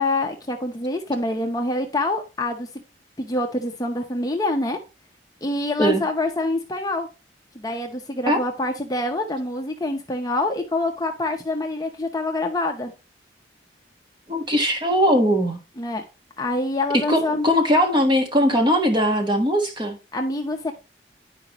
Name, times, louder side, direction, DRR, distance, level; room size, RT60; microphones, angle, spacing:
voice 1, 0.0-2.7 3.2-4.8 5.4-7.1 7.5-12.9 15.8-16.0 16.4-17.5 20.1-20.7, left 2 dB, 20° left, 0.7 m, -26 dB
voice 2, 14.3-15.6 16.9-20.0, equal, 25° right, 1.4 m, -20 dB
10.5 x 5.0 x 3.0 m
head